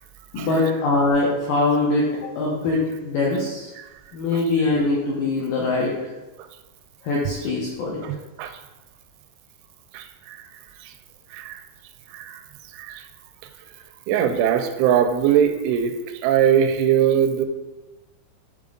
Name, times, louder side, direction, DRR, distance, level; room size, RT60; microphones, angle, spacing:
voice 1, 0.3-3.7 4.1-5.9 7.0-8.0, left 2 dB, 80° left, -4 dB, 2.0 m, -22 dB
voice 2, 8.0-8.6 9.9-10.4 10.8-10.9 11.3-11.6 12.1-12.4 12.7-13.1 14.1-15.9 16.2-17.5, right 9 dB, 85° right, 8 dB, 2.9 m, -21 dB
11.0 x 3.6 x 3.8 m, 1.1 s
omnidirectional pair, 5.3 m